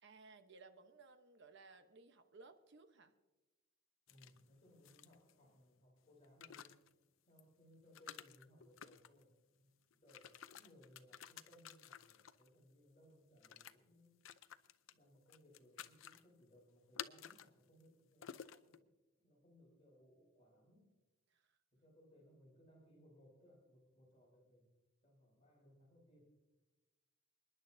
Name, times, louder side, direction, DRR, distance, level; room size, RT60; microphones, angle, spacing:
voice 1, 0.0-3.1 21.3-21.6, right 3 dB, 60° right, 8 dB, 1.0 m, -60 dB
sound 1, 4.1-5.6 6.2-6.9 7.4-7.5 7.9-9.2 9.9-12.5 13.4-13.7 14.2-14.9 15.3-16.2 17.0-17.5 17.8-17.9 18.2-18.8, left 9 dB, 75° left, 0.6 m, -53 dB
voice 2, 4.1-6.8 7.3-14.2 14.9-18.9 19.2-21.0 21.7-24.7 25.0-26.3, equal, 30° left, -4 dB, 3.7 m, -66 dB
28.5 x 10.5 x 2.7 m, 1.1 s
head